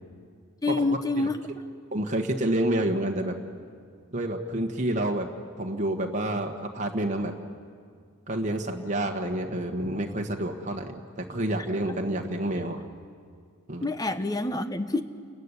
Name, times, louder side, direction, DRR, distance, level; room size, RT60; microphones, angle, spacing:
voice 1, 0.6-1.4 13.8-15.0, left 2 dB, 15° left, 10 dB, 0.9 m, -27 dB
voice 2, 1.9-3.4 4.1-5.3 5.6-7.3 8.3-12.8 13.7-13.9, right 1 dB, 35° right, 2 dB, 1.5 m, -28 dB
29.5 x 15.5 x 9.9 m, 2.2 s
head